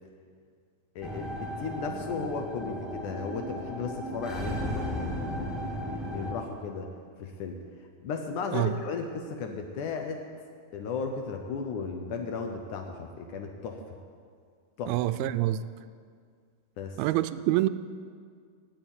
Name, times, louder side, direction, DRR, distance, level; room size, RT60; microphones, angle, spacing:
voice 1, 1.0-6.9 7.2-7.6 8.0-10.2 10.7-13.8 14.8-14.9 16.8-17.0, left 5 dB, 70° left, 4 dB, 2.1 m, -35 dB
sound 1, 1.0-6.3, equal, ahead, 0.4 m, -35 dB
voice 2, 14.9-15.6 17.0-17.7, right 15 dB, 85° right, 12 dB, 2.4 m, -26 dB
17.0 x 7.2 x 9.0 m, 2.1 s
omnidirectional pair, 4.3 m